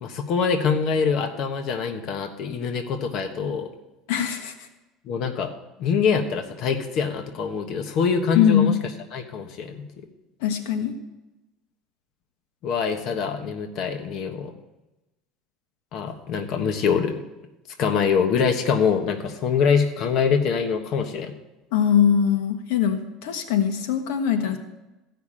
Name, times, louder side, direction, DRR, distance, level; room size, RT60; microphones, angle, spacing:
voice 1, 0.0-3.7 5.1-5.5 5.8-8.7 9.1-9.8 12.6-14.5 15.9-17.2 17.8-21.3, left 6 dB, 55° left, 5 dB, 1.3 m, -24 dB
voice 2, 4.1-4.7 8.3-8.7 10.4-10.9 21.7-24.6, left 8 dB, 80° left, 7 dB, 1.4 m, -21 dB
15.5 x 5.9 x 8.8 m, 1.0 s
cardioid pair, 135°, 0 cm